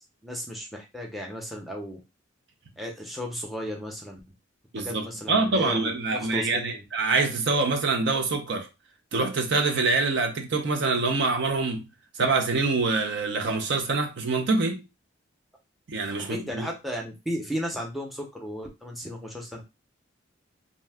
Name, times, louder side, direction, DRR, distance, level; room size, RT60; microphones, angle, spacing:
voice 1, 0.2-2.0 2.8-4.2 4.8-6.8 16.2-19.6, equal, ahead, 0.6 m, -35 dB
voice 2, 4.7-8.7 9.1-11.9 12.1-14.8 15.9-16.6, right 3 dB, 60° right, 0.5 m, -25 dB
2.6 x 2.2 x 3.4 m
head